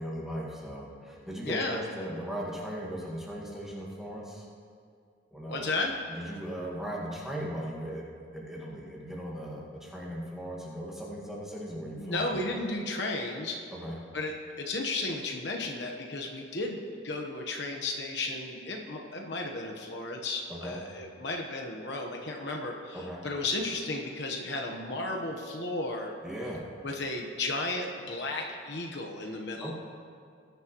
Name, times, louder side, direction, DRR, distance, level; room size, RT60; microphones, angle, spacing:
voice 1, 0.0-4.5 5.3-5.7 6.1-8.0 8.3-12.4 13.7-14.0 20.5-20.8 22.9-23.2 26.2-26.7 29.6-29.7, equal, ahead, -4 dB, 1.7 m, -38 dB
voice 2, 1.4-1.8 5.5-5.9 12.0-13.6 14.1-26.1 26.8-29.7, left 2 dB, 60° left, 1 dB, 1.1 m, -34 dB
20.5 x 10.5 x 3.0 m, 2.2 s
head